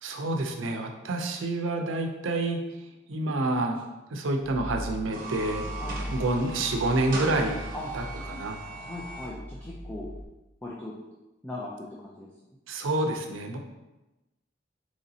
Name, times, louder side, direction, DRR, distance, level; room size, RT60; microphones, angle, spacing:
voice 1, 0.0-2.6 3.1-3.8 4.1-5.6 6.1-7.6 7.9-8.0 8.3-8.6 12.7-13.6, right 2 dB, 85° right, 4 dB, 0.5 m, -28 dB
sound 1, 4.4-10.2, equal, 30° left, 0.8 m, -39 dB
sound 2, 5.0-9.3, right 2 dB, 45° right, 0.7 m, -39 dB
voice 2, 5.8-6.2 7.7-7.9 8.7-10.1 10.6-10.9 11.4-12.3, left 2 dB, 10° left, -6 dB, 0.4 m, -39 dB
3.9 x 3.1 x 2.7 m, 1.0 s
head